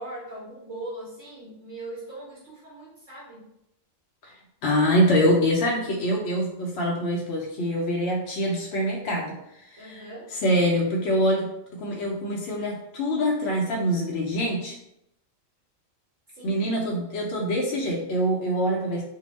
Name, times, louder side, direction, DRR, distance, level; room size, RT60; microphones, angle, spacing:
voice 1, 0.0-3.5 9.8-10.3 16.3-16.6, right 1 dB, 65° right, -7 dB, 1.1 m, -40 dB
voice 2, 4.2-10.0 10.4-11.5 11.8-14.8 16.4-19.0, equal, 65° left, -2 dB, 0.7 m, -25 dB
2.7 x 2.1 x 3.1 m, 0.80 s
omnidirectional pair, 1.3 m